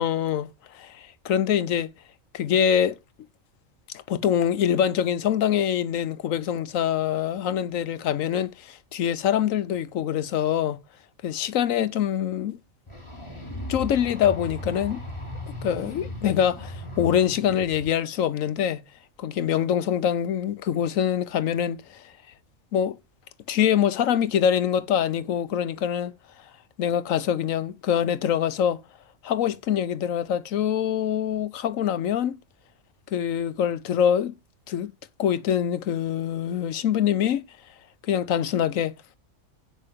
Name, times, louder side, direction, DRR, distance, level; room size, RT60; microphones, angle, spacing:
voice 1, 0.0-1.9 2.3-3.0 3.9-10.8 11.2-12.6 13.7-15.0 15.6-18.8 19.2-22.1 22.7-23.0 23.5-26.1 26.8-28.8 29.2-32.4 33.1-34.3 34.7-34.9 35.2-37.4 38.0-39.0, left 9 dB, 85° left, 1.2 m, -24 dB
sound 1, 12.9-17.9, left 1 dB, 20° left, 2.9 m, -37 dB
16.5 x 5.5 x 3.6 m
omnidirectional pair, 1.4 m